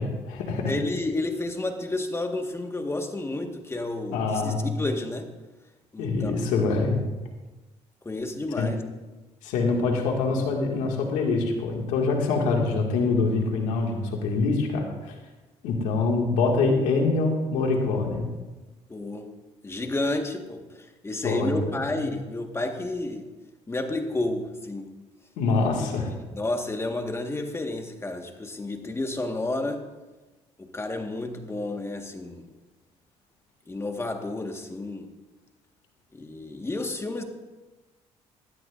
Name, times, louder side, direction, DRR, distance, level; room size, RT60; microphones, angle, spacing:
voice 1, 0.0-0.7 4.1-4.7 6.0-7.0 8.6-8.7 9.4-15.1 15.6-18.3 21.2-21.5 22.0-22.2 25.4-26.1, left 3 dB, 85° left, 1 dB, 2.2 m, -25 dB
voice 2, 0.7-5.3 5.9-6.3 8.1-8.8 18.9-19.3 19.6-23.3 23.7-24.9 25.7-29.8 30.6-32.5 33.7-35.0 36.1-37.2, left 2 dB, 20° left, 4 dB, 1.7 m, -31 dB
17.5 x 12.5 x 2.7 m, 1.2 s
supercardioid pair, 75°, 13 cm